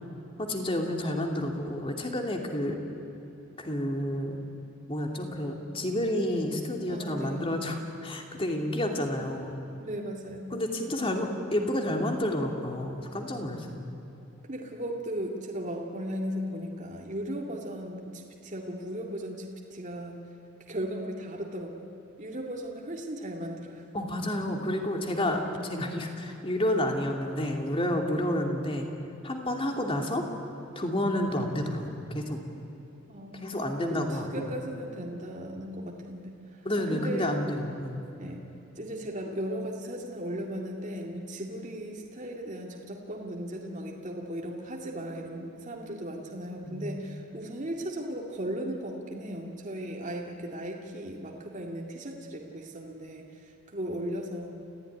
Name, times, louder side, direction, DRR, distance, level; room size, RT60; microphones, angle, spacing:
voice 1, 0.4-2.8 3.6-4.4 4.9-9.5 10.5-13.9 23.9-28.9 29.2-30.2 30.7-32.4 33.3-34.5 36.6-38.0 46.6-47.0, left 1 dB, 25° left, 2 dB, 2.7 m, -30 dB
voice 2, 6.9-7.5 9.8-10.5 14.5-20.2 20.7-23.8 28.1-28.4 33.1-36.6 36.9-37.3 38.2-38.4 38.8-54.5, equal, 40° right, 0 dB, 2.2 m, -37 dB
29.0 x 16.0 x 9.9 m, 3.0 s
head